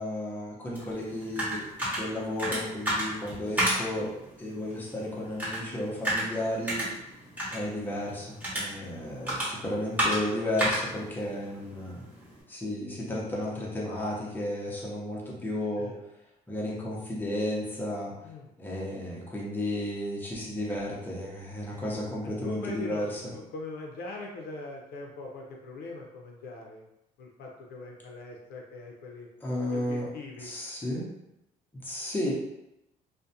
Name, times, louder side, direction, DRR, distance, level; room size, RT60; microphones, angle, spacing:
voice 1, 0.0-4.1 4.4-6.9 7.5-12.0 12.5-15.9 16.5-18.1 18.6-23.2 29.4-30.1 30.4-31.1 31.8-32.3, left 1 dB, 10° left, -5 dB, 0.7 m, -33 dB
sound 1, 0.8-12.4, right 1 dB, 10° right, 1.0 m, -33 dB
voice 2, 22.4-23.0 23.5-26.8 27.2-29.3 29.7-30.5, left 2 dB, 70° left, 0 dB, 0.5 m, -41 dB
2.4 x 2.1 x 2.7 m, 0.87 s
cardioid pair, 110°, 17 cm